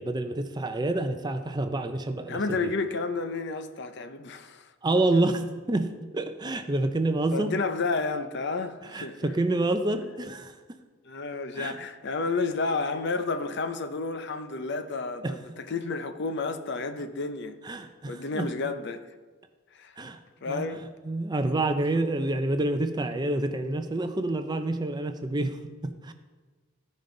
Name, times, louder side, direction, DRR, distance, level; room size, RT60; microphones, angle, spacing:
voice 1, 0.0-2.4 4.8-7.5 8.9-10.5 11.6-11.8 15.2-15.4 17.6-18.5 20.0-20.2 20.5-20.7 21.0-25.6 25.8-26.1, right 2 dB, 20° right, 0.5 m, -28 dB
voice 2, 2.3-4.6 7.3-9.3 11.1-17.6 18.1-19.0 19.7-19.9 20.4-20.8, left 3 dB, 55° left, 0.6 m, -31 dB
15.0 x 5.3 x 3.9 m
head